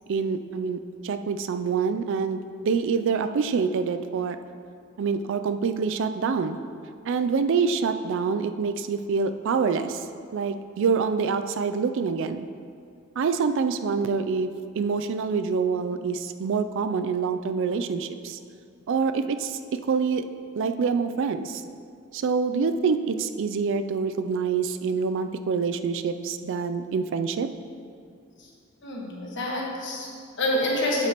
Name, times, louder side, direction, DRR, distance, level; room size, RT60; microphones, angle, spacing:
voice 1, 0.1-4.4 5.0-6.6 7.1-10.0 10.3-12.5 13.2-14.5 14.8-18.4 18.9-20.2 20.5-21.6 22.1-27.5, right 5 dB, 60° right, 9 dB, 0.4 m, -26 dB
voice 2, 28.8-31.1, left 1 dB, 60° left, -2 dB, 1.4 m, -27 dB
8.2 x 8.0 x 3.0 m, 2.3 s
head